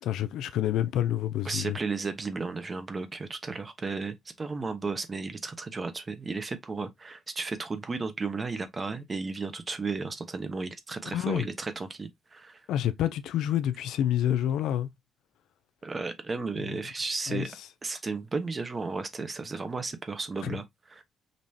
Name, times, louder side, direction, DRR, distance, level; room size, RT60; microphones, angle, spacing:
voice 1, 0.0-1.8 11.1-11.5 12.7-14.9 17.3-17.5 20.4-20.5, left 11 dB, 85° left, 0.5 m, -28 dB
voice 2, 1.4-12.6 15.8-17.5 17.8-21.0, right 4 dB, 30° right, 1.1 m, -34 dB
5.3 x 3.0 x 2.8 m
cardioid pair, 90°, 0 cm